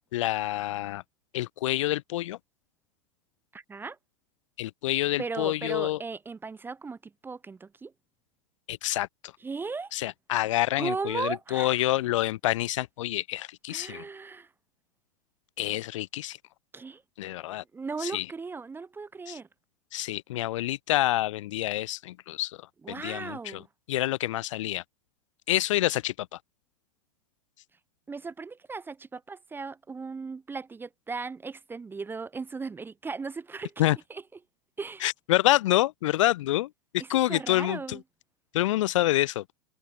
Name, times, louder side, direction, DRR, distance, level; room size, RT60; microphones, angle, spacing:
voice 1, 0.1-1.0 1.3-2.4 4.6-6.0 8.7-9.3 9.9-14.0 15.6-16.4 17.2-17.6 18.0-18.3 19.3-19.4 19.9-23.6 23.9-24.8 25.5-26.4 33.8-34.0 35.0-38.0 38.5-39.4, left 15 dB, 55° left, 0.4 m, -27 dB
voice 2, 3.5-4.0 5.2-7.9 9.4-9.9 10.8-11.9 13.7-14.5 16.7-17.0 17.5-19.5 22.8-23.7 28.1-33.8 34.1-34.2 34.8-35.0 37.3-38.0, right 4 dB, 10° right, 0.7 m, -37 dB
figure-of-eight pair, 95°, 19 cm